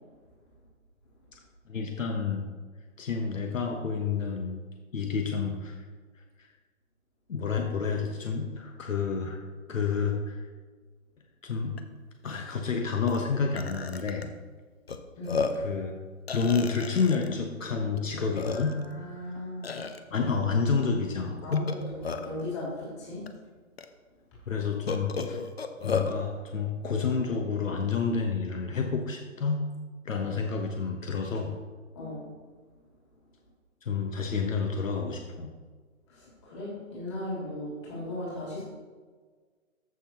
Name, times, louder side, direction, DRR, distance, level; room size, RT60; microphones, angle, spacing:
voice 1, 1.7-2.5 3.0-4.6 4.9-5.9 6.4-6.5 7.3-9.4 9.7-10.5 11.4-11.8 12.2-14.3 15.5-16.0 16.3-18.8 19.3-19.4 20.1-21.7 24.5-25.4 25.8-29.6 30.0-31.6 33.8-35.5, left 5 dB, 65° left, 2 dB, 1.1 m, -29 dB
Burping eructation, 11.8-11.9 12.2-12.4 13.1-13.2 13.6-14.2 14.9-15.0 15.3-15.7 16.3-17.3 18.0-18.1 18.4-18.9 19.6-20.0 21.5-22.4 23.3-23.4 23.8-23.9 24.9-26.1, left 5 dB, 50° left, 0.7 m, -33 dB
voice 2, 18.5-19.8 21.4-23.2 31.9-32.2 36.1-38.6, left 1 dB, 20° left, -7 dB, 2.7 m, -37 dB
14.0 x 5.8 x 3.0 m, 1.5 s
hypercardioid pair, 175°, 41 cm